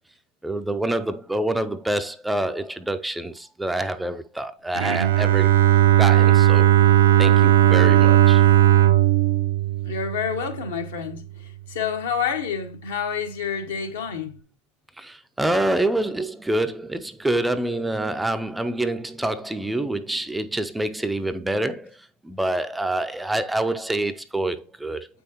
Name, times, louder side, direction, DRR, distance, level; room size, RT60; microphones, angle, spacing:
voice 1, 0.4-5.5 6.0-6.7 7.2-8.4 15.0-22.0 22.2-25.1, right 1 dB, 5° right, 0.4 m, -26 dB
Bowed string instrument, 4.8-10.7, right 12 dB, 75° right, 0.5 m, -17 dB
voice 2, 9.8-11.2 11.7-14.3, left 7 dB, 75° left, 1.5 m, -28 dB
8.0 x 5.5 x 2.9 m
hypercardioid pair, 100°, 0 cm